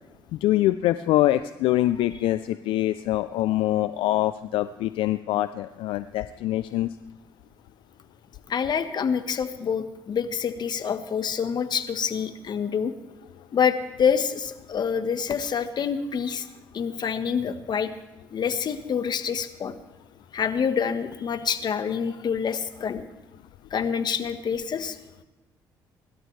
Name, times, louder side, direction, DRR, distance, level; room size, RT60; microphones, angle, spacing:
voice 1, 0.3-6.9, left 14 dB, 75° left, 13 dB, 0.5 m, -24 dB
voice 2, 8.5-12.9 13.5-16.5 16.7-17.9 18.3-19.7 20.3-23.0 23.7-25.0, left 7 dB, 55° left, 9 dB, 1.3 m, -27 dB
25.5 x 12.5 x 3.3 m, 1.1 s
supercardioid pair, 65°, 9 cm